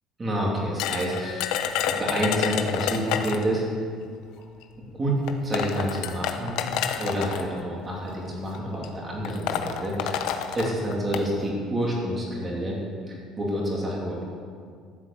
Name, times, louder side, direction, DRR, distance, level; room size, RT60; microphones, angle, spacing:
voice 1, 0.2-3.6 5.0-6.7 7.0-10.2 10.5-12.8 13.1-14.2, equal, 20° right, -3 dB, 3.2 m, -28 dB
sound 1, 0.8-3.5 4.6-4.7 5.3-7.4 8.3-8.6 8.8-8.9 9.2-11.3, left 9 dB, 75° left, 1.0 m, -29 dB
14.0 x 8.3 x 7.6 m, 2.1 s
cardioid pair, 160°, 0 cm